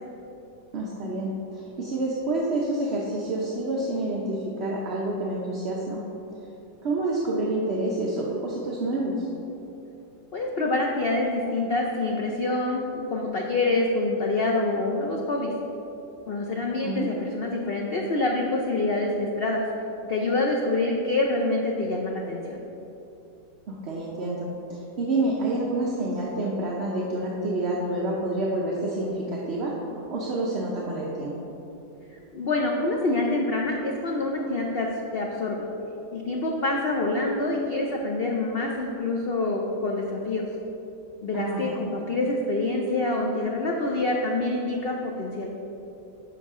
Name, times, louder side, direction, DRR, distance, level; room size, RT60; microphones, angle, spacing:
voice 1, 0.7-6.0 6.8-9.3 16.8-17.2 23.7-29.7 30.1-31.3 41.3-41.8, right 2 dB, 50° right, -4 dB, 0.8 m, -28 dB
voice 2, 10.3-15.5 16.3-19.6 20.1-22.6 32.1-35.6 36.1-40.5 41.2-45.5, left 2 dB, 90° left, 0 dB, 0.5 m, -26 dB
10.0 x 5.9 x 3.6 m, 3.0 s
omnidirectional pair, 1.9 m